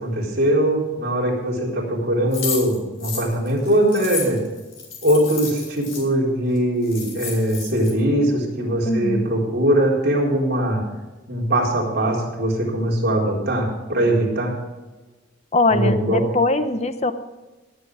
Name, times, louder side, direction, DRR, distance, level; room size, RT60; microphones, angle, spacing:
voice 1, 0.0-4.4 5.0-10.8 11.3-14.5 15.7-16.2, right 1 dB, 50° right, -3 dB, 4.3 m, -21 dB
sound 1, 2.3-6.0 6.6-6.7 6.8-7.9, left 5 dB, 85° left, 5.0 m, -31 dB
voice 2, 8.9-9.3 15.5-17.1, left 2 dB, 35° left, 10 dB, 0.8 m, -21 dB
18.5 x 8.5 x 5.0 m, 1.2 s
head